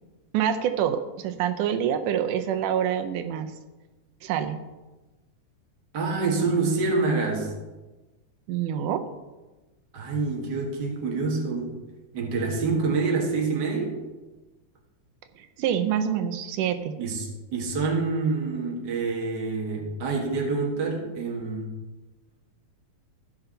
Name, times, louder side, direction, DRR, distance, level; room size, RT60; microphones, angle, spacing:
voice 1, 0.3-3.5 4.2-4.6 8.5-9.0 15.4-17.0, right 9 dB, 85° right, 8 dB, 2.2 m, -26 dB
voice 2, 5.9-7.5 9.9-11.8 12.1-14.0 17.0-21.7, right 4 dB, 40° right, 0 dB, 1.7 m, -27 dB
15.0 x 5.9 x 3.9 m, 1.1 s
omnidirectional pair, 3.6 m